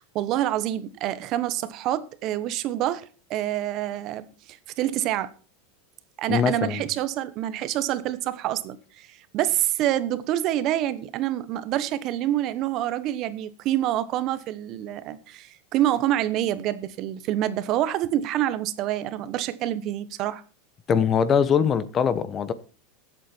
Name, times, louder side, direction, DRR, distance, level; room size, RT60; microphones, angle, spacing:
voice 1, 0.0-5.3 6.2-20.4, right 13 dB, 45° right, 1.1 m, -27 dB
voice 2, 6.3-6.8 20.9-22.5, left 7 dB, 25° left, 1.0 m, -22 dB
15.0 x 8.3 x 4.5 m
supercardioid pair, 135°, 0 cm